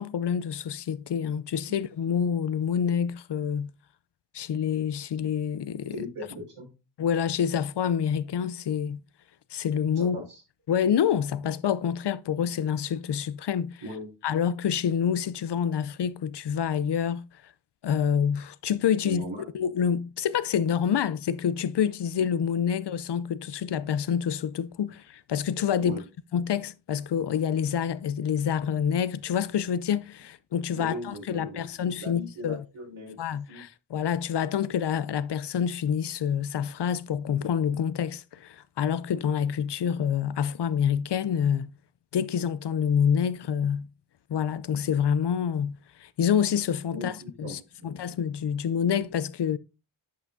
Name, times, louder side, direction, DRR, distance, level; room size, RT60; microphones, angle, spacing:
voice 1, 0.0-3.7 4.3-6.0 7.0-9.0 9.5-10.2 10.7-13.7 14.2-17.2 17.8-19.3 19.5-26.0 26.3-32.6 33.2-41.7 42.1-43.9 44.3-47.1 47.4-49.6, left 8 dB, 55° left, 0.5 m, -27 dB
voice 2, 5.9-6.7 9.9-10.4 13.8-14.1 19.0-19.4 25.8-26.0 30.7-31.7 32.0-33.2 33.5-33.6 46.9-48.0, equal, 75° right, 5.0 m, -38 dB
10.5 x 5.7 x 2.6 m
wide cardioid pair, 140°, 50 cm